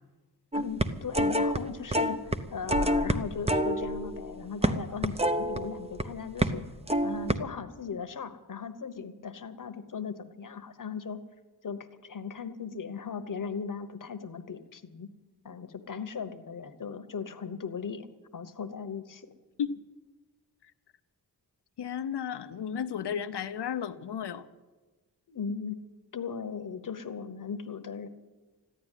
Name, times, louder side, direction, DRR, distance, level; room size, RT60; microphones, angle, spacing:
voice 1, 0.5-6.6 7.0-11.2 11.6-15.1 15.4-18.1 18.3-19.3 25.3-25.8 26.1-28.1, left 6 dB, 50° left, 1.0 m, -38 dB
sound 1, 0.5-1.6 1.9-2.4 2.7-6.0 6.4-6.6 6.9-7.4, right 1 dB, 15° right, 0.6 m, -27 dB
voice 2, 21.8-24.5, left 8 dB, 75° left, 0.8 m, -33 dB
14.5 x 11.0 x 9.1 m
wide cardioid pair, 140°, 41 cm